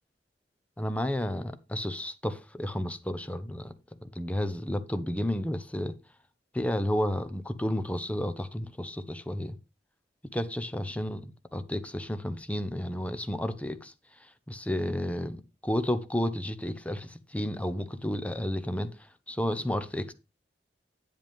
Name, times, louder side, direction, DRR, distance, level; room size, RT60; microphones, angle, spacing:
voice 1, 0.8-3.7 4.0-6.0 6.5-9.6 10.3-13.9 14.2-18.9 19.3-20.1, left 1 dB, 10° left, 0.7 m, -32 dB
9.0 x 8.0 x 3.5 m
head